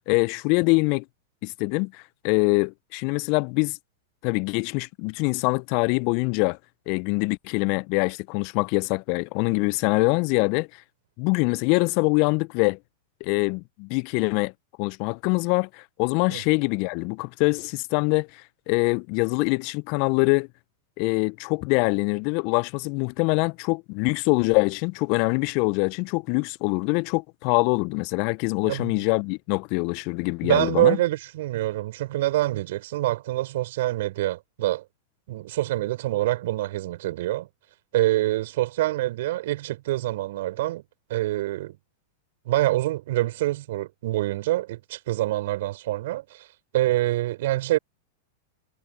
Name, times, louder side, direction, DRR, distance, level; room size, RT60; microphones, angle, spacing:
voice 1, 0.1-1.0 1.4-3.8 4.2-6.6 6.9-10.7 11.2-12.8 13.2-14.5 14.8-18.4 18.7-20.5 21.0-31.0, left 32 dB, 45° left, 1.0 m, -24 dB
voice 2, 28.7-29.0 30.4-34.8 35.3-37.5 37.9-40.8 41.1-41.8 42.5-46.5 46.7-47.8, right 16 dB, 60° right, 7.1 m, -25 dB
figure-of-eight pair, 95°, 0 cm